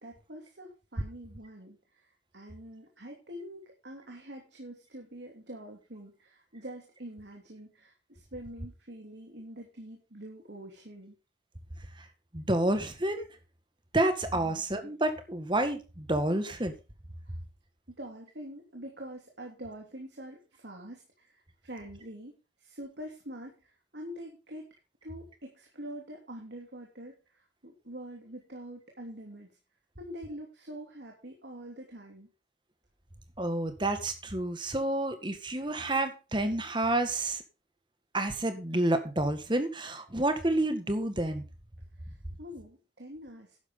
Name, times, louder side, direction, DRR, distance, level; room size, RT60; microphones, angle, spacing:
voice 1, 0.0-1.8 2.3-11.1 14.3-14.6 17.3-17.4 18.0-21.4 21.6-22.3 22.6-23.5 23.9-24.6 25.0-27.1 27.6-29.5 30.0-32.3 42.4-43.6, right 1 dB, 70° right, 1 dB, 3.0 m, -45 dB
voice 2, 12.3-13.3 13.9-16.7 33.4-37.4 38.1-41.4, right 1 dB, 25° right, 8 dB, 1.8 m, -29 dB
12.0 x 9.8 x 3.8 m, 0.31 s
head